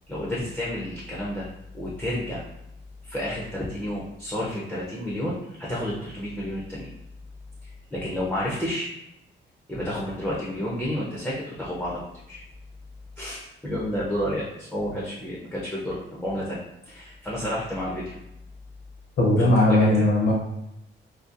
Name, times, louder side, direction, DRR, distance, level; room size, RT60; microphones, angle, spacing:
voice 1, 0.1-1.5 1.7-2.5 3.0-6.9 7.6-8.9 9.7-12.0 12.3-12.4 13.2-18.1 19.4-19.9, equal, 5° left, -6 dB, 0.4 m, -30 dB
voice 2, 19.2-20.3, left 1 dB, 65° left, -5 dB, 0.6 m, -18 dB
2.6 x 2.2 x 2.4 m, 0.85 s
wide cardioid pair, 155°, 20 cm